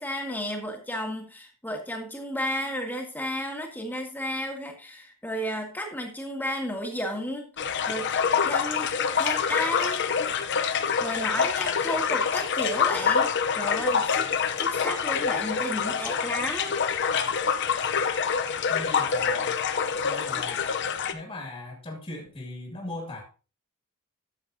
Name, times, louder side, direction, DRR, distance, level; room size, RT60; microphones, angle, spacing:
voice 1, 0.0-7.5 7.9-8.1 8.4-8.9 9.2-10.1 11.0-14.3 14.6-16.8, left 1 dB, 10° left, 2 dB, 1.8 m, -32 dB
sound 1, 7.6-21.1, left 6 dB, 55° left, 0.7 m, -26 dB
voice 2, 18.7-19.6 20.0-20.7 21.1-23.2, left 2 dB, 25° left, -1 dB, 2.1 m, -38 dB
12.5 x 7.6 x 2.7 m, 0.35 s
head